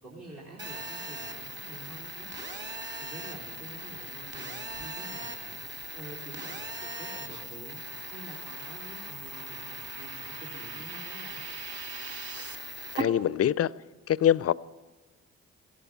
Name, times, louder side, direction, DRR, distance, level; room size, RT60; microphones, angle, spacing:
voice 1, 0.0-2.3 3.0-5.6 5.9-7.8 8.1-11.4, right 2 dB, 55° right, -6 dB, 3.7 m, -47 dB
Telephone, 0.6-13.0, right 1 dB, 30° right, 2.4 m, -40 dB
sound 1, 5.7-12.5, right 6 dB, 80° right, 1.1 m, -46 dB
voice 2, 12.9-13.7 14.1-14.5, left 10 dB, 45° left, 21 dB, 0.5 m, -24 dB
16.5 x 14.0 x 5.6 m, 1.2 s
hypercardioid pair, 45°, 35 cm